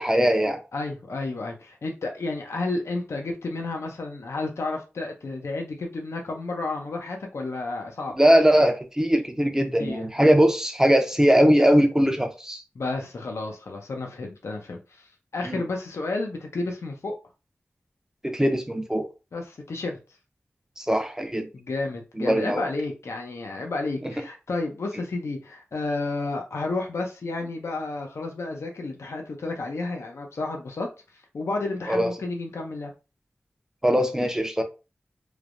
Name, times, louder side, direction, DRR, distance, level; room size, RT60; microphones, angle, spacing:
voice 1, 0.0-0.6 8.2-12.6 15.5-15.6 18.2-19.1 20.8-21.5 22.2-22.6 24.0-24.1 31.9-32.1 33.8-34.6, equal, 10° right, 0.5 m, -20 dB
voice 2, 0.7-8.1 9.8-10.1 12.7-17.1 19.3-20.0 21.5-30.9 31.3-32.9, left 3 dB, 80° left, 0.5 m, -31 dB
3.2 x 2.1 x 2.5 m
cardioid pair, 40°, 5 cm